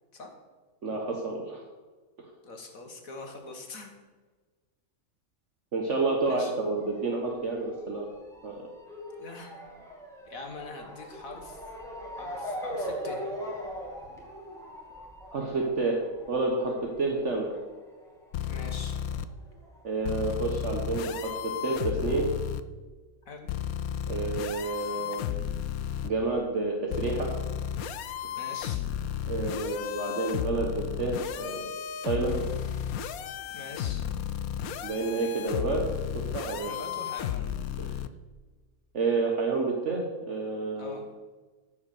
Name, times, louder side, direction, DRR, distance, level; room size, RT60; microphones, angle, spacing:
voice 1, 0.8-1.6 5.7-8.1 8.4-8.6 15.3-16.0 16.3-17.5 19.8-22.3 24.1-25.3 26.0-27.3 29.2-31.7 32.0-32.4 34.8-35.8 36.1-36.7 37.8-37.9 38.9-40.9, right 3 dB, 55° right, 0 dB, 1.5 m, -29 dB
voice 2, 2.4-3.9 6.2-6.6 9.2-9.6 10.3-11.6 12.2-13.3 18.5-19.0 23.3-23.5 28.4-28.9 33.5-34.0 36.6-37.5 40.8-41.0, left 3 dB, 70° left, 3 dB, 2.1 m, -43 dB
Motor vehicle (road) / Siren, 6.8-19.8 20.0-21.2 21.9-22.0 22.2-22.3, equal, ahead, 2.1 m, -41 dB
sound 1, 18.3-19.2 20.0-22.6 23.5-26.1 26.9-38.1, left 9 dB, 85° left, 1.1 m, -33 dB
13.5 x 5.4 x 6.7 m, 1.4 s
omnidirectional pair, 1.5 m